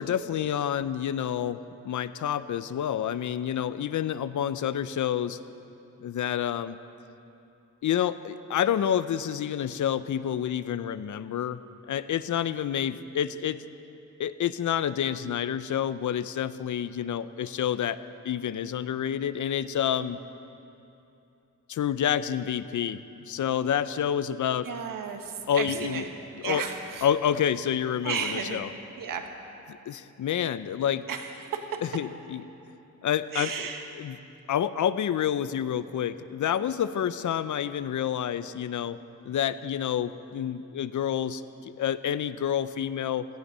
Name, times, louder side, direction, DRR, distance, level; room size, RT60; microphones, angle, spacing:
voice 1, 0.0-1.6 1.8-5.4 6.0-6.8 7.8-11.6 11.9-13.6 14.2-18.0 18.2-20.2 21.7-23.0 23.3-24.7 25.5-26.0 26.4-26.6 27.0-28.7 29.9-31.0 31.8-32.4 33.0-33.7 34.0-34.2 34.5-39.0 39.2-43.3, left 9 dB, 65° left, 14 dB, 0.6 m, -28 dB
voice 2, 24.6-26.0 26.3-27.1 28.0-28.6 29.0-29.3 31.1-31.8 33.3-33.9, right 6 dB, 85° right, 4 dB, 1.5 m, -33 dB
17.0 x 15.0 x 5.5 m, 2.8 s
wide cardioid pair, 135°, 32 cm